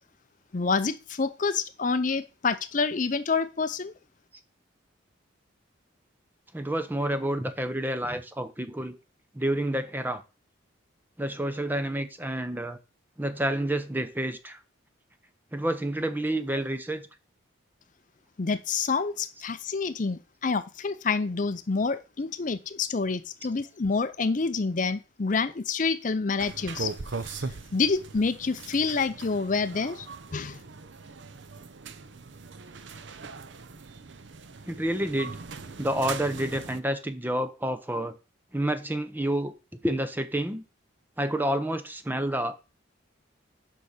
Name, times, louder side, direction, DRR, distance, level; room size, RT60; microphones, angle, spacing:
voice 1, 0.5-3.9 18.4-26.9 27.2-30.1 30.3-30.6, left 4 dB, 40° left, 0.5 m, -28 dB
voice 2, 6.5-9.0 9.3-10.2 11.2-12.8 13.2-14.6 15.5-17.0 34.7-35.4 35.8-38.1 38.5-39.5 39.8-40.6 41.2-42.6, right 1 dB, 10° right, 0.6 m, -29 dB
sound 1, 26.4-36.8, right 4 dB, 65° right, 0.7 m, -40 dB
6.9 x 5.6 x 6.5 m
head